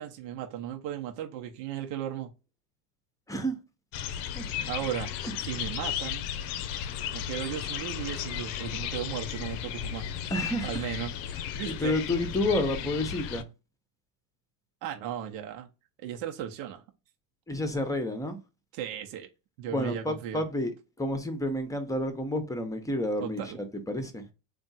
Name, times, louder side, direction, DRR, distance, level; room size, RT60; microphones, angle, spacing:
voice 1, 0.0-2.3 4.7-5.1 5.4-6.2 7.1-10.1 10.6-11.1 11.5-11.9 14.8-15.7 16.0-16.8 18.7-19.3 19.6-20.4 23.2-23.6, right 10 dB, 70° right, 1.0 m, -36 dB
sound 1, 3.9-13.4, left 10 dB, 55° left, 0.6 m, -35 dB
voice 2, 4.3-4.7 5.2-5.3 10.3-10.9 11.6-13.5 17.5-18.4 19.7-23.4 23.7-24.3, left 1 dB, 5° left, 0.7 m, -30 dB
3.5 x 2.5 x 4.1 m
supercardioid pair, 110°, 49 cm